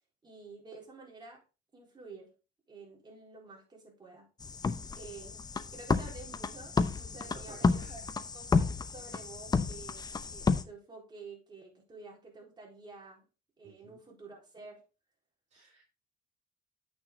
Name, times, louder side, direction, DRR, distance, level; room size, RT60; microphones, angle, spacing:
voice 1, 0.2-1.4 1.7-2.3 2.7-4.3 4.9-5.4 5.7-8.0 8.3-13.2 13.6-14.8, right 4 dB, 25° right, -1 dB, 4.1 m, -50 dB
sound 1, 4.4-10.6, left 4 dB, 25° left, 0.7 m, -31 dB
voice 2, 7.3-8.0 13.6-14.0 15.5-15.8, right 4 dB, 40° right, 0 dB, 2.0 m, -54 dB
8.7 x 6.2 x 3.8 m, 0.32 s
cardioid pair, 110°, 17 cm